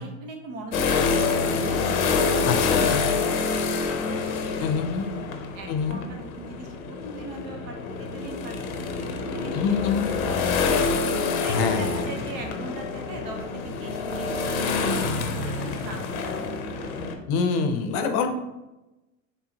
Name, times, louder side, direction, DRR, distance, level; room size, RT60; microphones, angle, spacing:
voice 1, 0.0-2.4 2.7-10.7 11.4-14.8 15.1-16.5 16.8-17.0 17.9-18.3, right 3 dB, 55° right, 3 dB, 1.1 m, -41 dB
sound 1, 0.7-17.1, left 4 dB, 90° left, 0.8 m, -27 dB
voice 2, 2.5-3.0 4.6-5.0 5.7-6.0 9.5-10.0 11.5-12.0 17.3-18.3, left 5 dB, 55° left, 6 dB, 0.7 m, -25 dB
4.4 x 3.3 x 2.8 m, 0.99 s
supercardioid pair, 110°, 41 cm